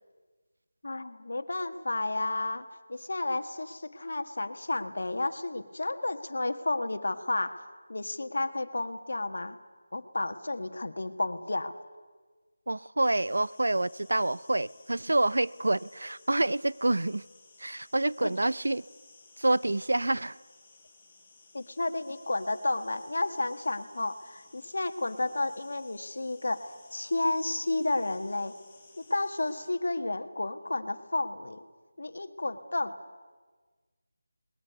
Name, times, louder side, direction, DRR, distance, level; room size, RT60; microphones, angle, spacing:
voice 1, 0.8-9.6 9.9-11.8 18.2-18.3 21.5-28.5 29.0-31.6 32.0-33.0, left 2 dB, 60° left, 1.6 m, -32 dB
voice 2, 12.7-17.2 17.6-18.8 19.4-20.4, right 2 dB, 85° right, 0.6 m, -27 dB
sound 1, 13.0-29.7, left 3 dB, 10° left, 1.9 m, -58 dB
20.0 x 20.0 x 9.4 m
figure-of-eight pair, 180°, 0 cm